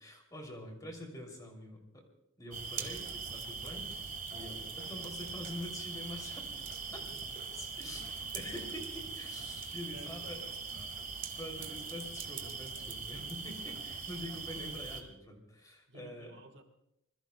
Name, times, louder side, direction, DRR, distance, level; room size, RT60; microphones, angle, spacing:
voice 1, 0.0-2.0 2.4-6.5 6.9-7.0 7.5-8.0 8.3-10.4 11.4-16.4, left 1 dB, 15° left, 1 dB, 2.9 m, -45 dB
sound 1, 2.5-15.0, right 5 dB, 40° right, 1.6 m, -41 dB
voice 2, 7.8-8.3 9.9-11.1 14.5-14.6 15.9-16.6, right 2 dB, 55° right, 5 dB, 1.5 m, -55 dB
26.5 x 21.0 x 2.3 m, 0.83 s
head